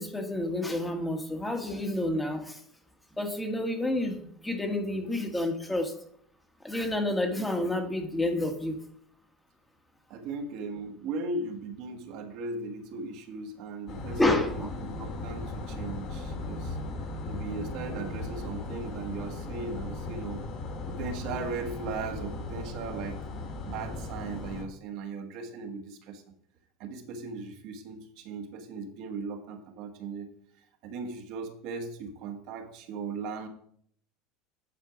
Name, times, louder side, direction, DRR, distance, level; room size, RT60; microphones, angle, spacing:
voice 1, 0.0-2.6 3.2-5.9 6.6-8.8 14.2-14.7, left 1 dB, 10° left, 5 dB, 1.3 m, -29 dB
voice 2, 10.1-16.8 17.3-20.4 20.9-23.2 23.6-26.2 26.8-30.3 30.8-33.5, right 4 dB, 60° right, 4 dB, 1.4 m, -38 dB
sound 1, 13.9-24.6, left 2 dB, 50° left, 2.0 m, -37 dB
9.7 x 4.5 x 4.9 m, 0.65 s
supercardioid pair, 115°, 0 cm